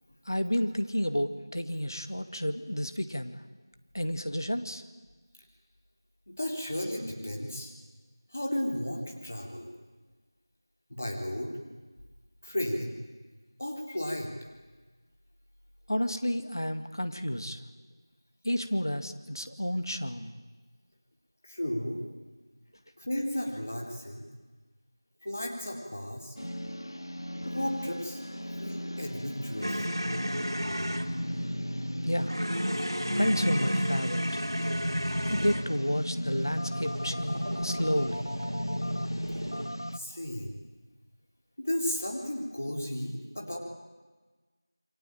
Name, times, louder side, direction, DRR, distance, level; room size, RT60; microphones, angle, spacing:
voice 1, 0.3-3.4 3.9-4.8 15.9-17.6 18.4-20.3 32.0-32.4 33.2-34.4 35.3-38.2, equal, 60° left, 8 dB, 2.3 m, -31 dB
voice 2, 6.3-7.7 8.3-9.7 10.9-11.5 12.4-12.9 13.6-14.3 21.4-22.0 23.0-24.2 25.2-26.4 27.5-28.2 28.6-29.9 39.9-40.6 41.6-43.6, left 1 dB, 30° left, 1 dB, 3.8 m, -34 dB
sound 1, 26.4-40.0, equal, 85° left, 1.4 m, -35 dB
sound 2, 29.6-31.1 32.3-35.8 36.7-39.7, equal, 80° right, 3.0 m, -34 dB
28.0 x 23.5 x 9.0 m, 1.3 s
figure-of-eight pair, 175°, 2 cm